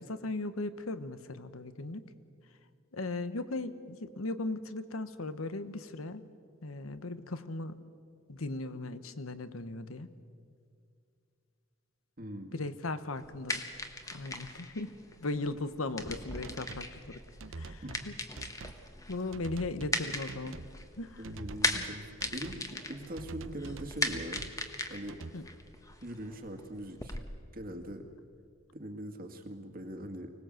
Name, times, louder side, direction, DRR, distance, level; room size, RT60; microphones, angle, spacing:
voice 1, 0.0-2.1 2.9-6.2 6.6-7.8 8.3-10.1 12.5-14.9 15.2-17.2 17.5-18.2 19.1-20.6 21.0-21.2 25.3-25.5, left 2 dB, 85° left, 12 dB, 1.1 m, -37 dB
voice 2, 12.2-12.5 17.8-17.9 21.2-24.5 24.9-25.2 26.0-27.2 27.5-28.1 28.7-30.3, right 1 dB, 45° right, 5 dB, 2.1 m, -41 dB
sound 1, 13.1-27.2, left 2 dB, 15° left, 1.3 m, -39 dB
sound 2, 16.4-16.9 17.4-18.1 18.4-18.8 19.3-20.0 20.3-20.7 21.2-21.9 22.2-22.6 23.2-24.6 25.1-25.3, right 3 dB, 65° right, 0.8 m, -45 dB
25.0 x 19.0 x 7.7 m, 2.3 s
head